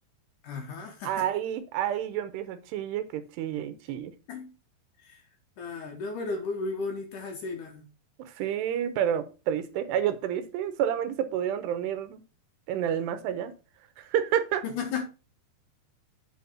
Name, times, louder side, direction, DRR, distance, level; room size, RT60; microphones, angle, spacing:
voice 1, 0.4-1.3 4.3-4.5 5.0-5.2 5.6-7.8 14.6-15.0, left 4 dB, 65° left, 2.2 m, -34 dB
voice 2, 1.0-4.1 8.2-12.2 12.7-13.5 14.0-14.6, right 10 dB, 85° right, 2.9 m, -29 dB
8.7 x 4.2 x 5.9 m
omnidirectional pair, 4.9 m